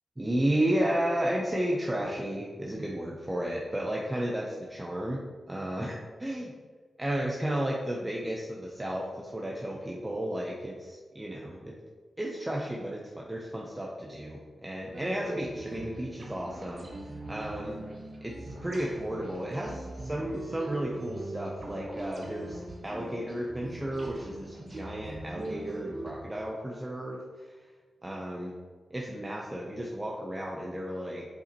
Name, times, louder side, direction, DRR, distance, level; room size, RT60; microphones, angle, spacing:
voice 1, 0.2-5.2 5.5-5.9 6.2-6.5 7.0-11.8 12.2-17.8 18.2-27.5 28.0-28.5 28.9-31.3, right 1 dB, 20° right, -2 dB, 1.0 m, -33 dB
sound 1, 14.9-26.1, right 2 dB, 50° right, 1.3 m, -41 dB
7.0 x 5.4 x 3.1 m, 1.5 s
supercardioid pair, 45°, 0 cm